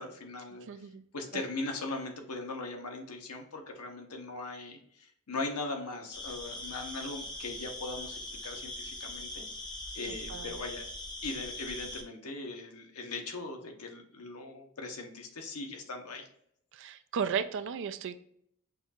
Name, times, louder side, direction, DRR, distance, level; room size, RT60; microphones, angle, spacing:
voice 1, 0.0-0.9 1.1-9.5 9.9-10.9 11.2-16.3, left 3 dB, 85° left, 3 dB, 1.0 m, -39 dB
voice 2, 0.7-1.0 10.1-10.5 16.7-18.2, right 6 dB, 55° right, 12 dB, 0.4 m, -35 dB
sound 1, 6.1-12.0, left 1 dB, 20° left, 0.7 m, -41 dB
6.0 x 2.4 x 2.7 m, 0.68 s
head